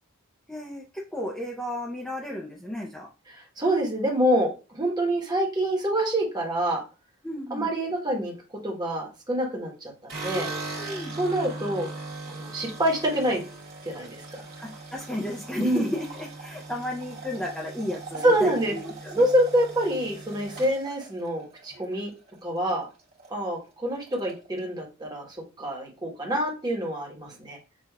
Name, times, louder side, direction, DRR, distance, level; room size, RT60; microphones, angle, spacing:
voice 1, 0.5-3.1 7.2-7.7 10.3-11.1 14.6-19.2, left 1 dB, 5° left, -3 dB, 0.5 m, -34 dB
voice 2, 3.3-6.8 7.5-8.3 8.6-10.5 11.2-11.9 12.3-13.4 13.8-14.4 15.6-15.9 18.2-18.7 19.2-22.1 22.4-22.9 23.3-27.6, right 1 dB, 20° right, -1 dB, 1.1 m, -26 dB
sound 1, 10.1-22.3 22.7-23.3 23.6-23.7 23.9-24.7, right 3 dB, 45° right, 1.6 m, -40 dB
6.3 x 2.5 x 2.2 m, 0.32 s
head